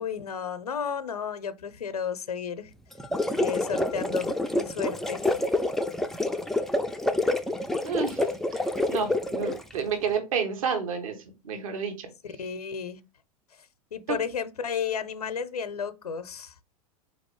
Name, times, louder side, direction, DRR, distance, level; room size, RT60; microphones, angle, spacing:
voice 1, 0.0-2.7 3.4-5.4 12.4-13.0 13.9-16.5, left 7 dB, 80° left, 0.6 m, -33 dB
sound 1, 2.9-9.7, left 1 dB, ahead, 0.3 m, -27 dB
voice 2, 7.8-8.6 8.9-11.2 11.4-12.1 14.1-14.2, right 6 dB, 60° right, 1.2 m, -30 dB
4.1 x 2.9 x 4.5 m
figure-of-eight pair, 90°, 19 cm